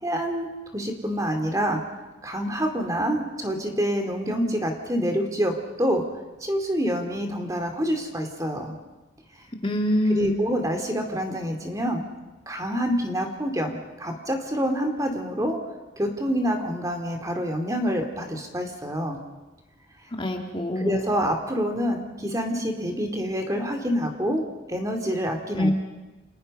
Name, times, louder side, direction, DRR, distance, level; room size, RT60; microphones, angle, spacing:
voice 1, 0.0-1.8 2.2-6.1 6.4-8.7 10.1-12.1 12.5-15.6 16.0-19.2 20.8-25.7, equal, 15° right, 4 dB, 2.7 m, -27 dB
voice 2, 9.6-10.4 20.2-21.0 25.6-25.7, left 1 dB, 25° left, 2 dB, 2.4 m, -24 dB
30.0 x 26.5 x 5.5 m, 1.1 s
head